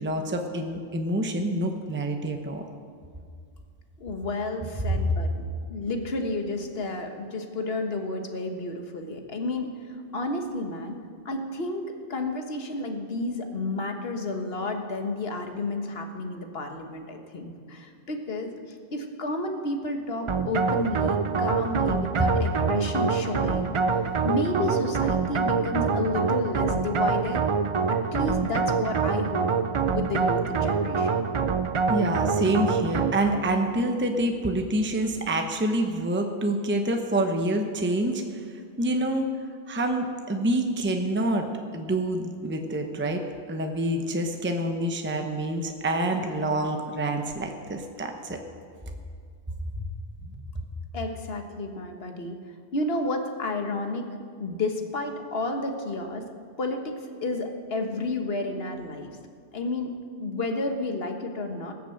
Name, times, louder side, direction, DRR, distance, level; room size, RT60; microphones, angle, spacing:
voice 1, 0.0-2.6 31.9-38.4 38.8-39.3 39.7-41.5 41.7-48.4 50.4-50.5, right 1 dB, 10° right, 4 dB, 0.8 m, -27 dB
voice 2, 4.0-11.0 11.2-27.5 27.9-29.5 29.9-31.2 50.9-52.4 52.7-54.1 54.4-56.2 56.6-59.1 59.5-59.9 60.2-61.7, left 2 dB, 60° left, 4 dB, 1.5 m, -31 dB
sound 1, 20.3-33.5, right 5 dB, 45° right, 0.4 m, -25 dB
19.0 x 6.8 x 7.8 m, 2.1 s
omnidirectional pair, 1.1 m